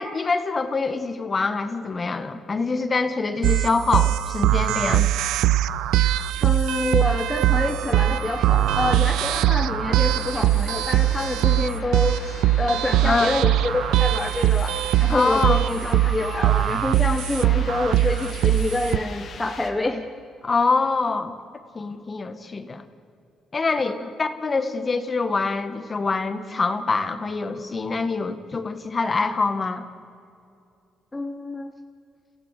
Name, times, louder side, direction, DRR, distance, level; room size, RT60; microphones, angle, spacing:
voice 1, 0.0-5.1 13.0-13.3 15.1-15.6 20.4-21.3 21.7-22.8 23.5-29.8, left 4 dB, 35° left, 9 dB, 1.6 m, -25 dB
sound 1, 3.4-19.0, right 13 dB, 90° right, 0.5 m, -21 dB
voice 2, 6.4-14.7 15.0-20.0 23.8-24.1 31.1-31.7, left 2 dB, 20° left, 4 dB, 1.3 m, -27 dB
sound 2, 7.5-19.7, left 5 dB, 60° left, 2.1 m, -40 dB
28.5 x 16.0 x 6.7 m, 2.5 s
cardioid pair, 90°, 0 cm